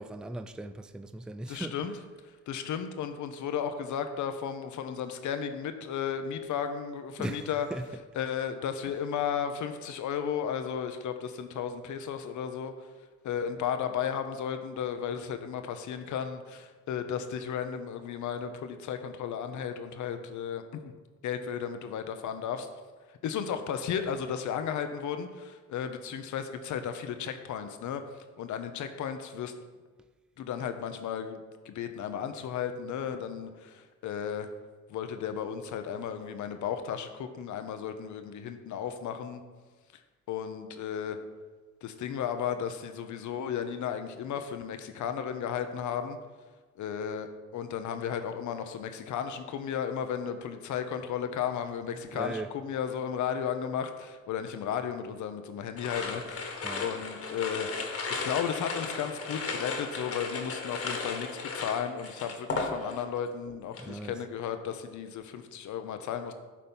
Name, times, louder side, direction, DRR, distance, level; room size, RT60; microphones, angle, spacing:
voice 1, 0.0-1.8 7.2-7.8 51.9-52.5 56.6-56.9 63.8-64.2, right 2 dB, 5° right, 0.4 m, -38 dB
voice 2, 1.5-1.9 2.5-7.7 8.2-12.7 13.2-20.8 21.2-22.7 23.2-28.0 28.4-29.5 30.4-31.4 31.6-34.5 34.9-39.4 40.3-41.2 41.8-46.2 46.8-47.3 47.5-57.7 58.1-61.3 61.5-66.3, left 8 dB, 75° left, 0.9 m, -34 dB
sound 1, 55.8-63.2 63.5-63.9, left 4 dB, 50° left, 1.5 m, -35 dB
12.0 x 4.3 x 5.4 m
cardioid pair, 90°, 30 cm